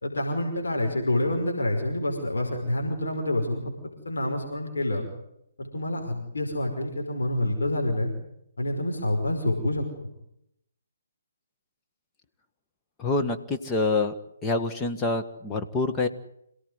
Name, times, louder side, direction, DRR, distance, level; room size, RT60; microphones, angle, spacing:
voice 1, 0.0-3.7 4.1-5.1 5.6-8.1 8.6-9.8, left 1 dB, 70° left, 2 dB, 5.2 m, -27 dB
voice 2, 13.0-14.1 14.4-16.1, left 3 dB, 15° left, 4 dB, 1.8 m, -26 dB
27.0 x 17.5 x 9.5 m, 0.78 s
figure-of-eight pair, 140°, 0 cm